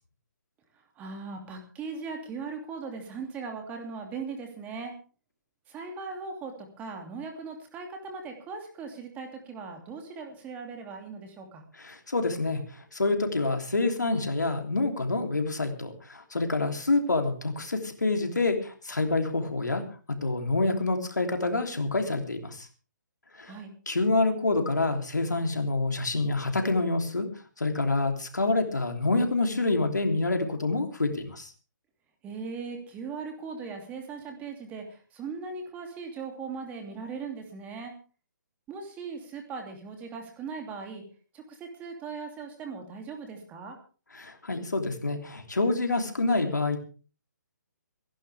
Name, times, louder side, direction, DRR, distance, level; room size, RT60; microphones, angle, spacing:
voice 1, 1.0-4.9 5.7-11.6 23.5-23.7 32.2-37.9 38.7-41.0 41.3-43.8, right 5 dB, 15° right, 3 dB, 2.7 m, -39 dB
voice 2, 11.8-12.6 12.9-19.8 20.2-22.7 23.4-23.5 23.9-27.3 27.6-31.5 44.1-46.8, left 3 dB, 75° left, 5 dB, 3.2 m, -27 dB
26.5 x 11.5 x 3.5 m, 0.37 s
figure-of-eight pair, 135°, 10 cm